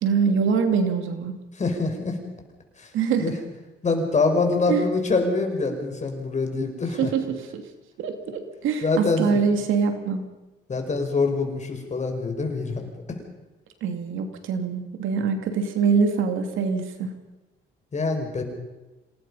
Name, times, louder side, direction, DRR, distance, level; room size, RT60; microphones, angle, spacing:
voice 1, 0.0-1.3 2.9-3.3 4.7-4.8 7.0-7.6 8.0-10.2 13.8-17.1, right 5 dB, 85° right, 7 dB, 2.7 m, -24 dB
voice 2, 1.6-2.2 2.8-2.9 3.2-3.3 3.8-7.1 8.8-9.4 10.7-13.2 17.9-18.4, left 3 dB, 35° left, 4 dB, 5.2 m, -25 dB
26.5 x 19.0 x 5.7 m, 1.1 s
cardioid pair, 90°, 20 cm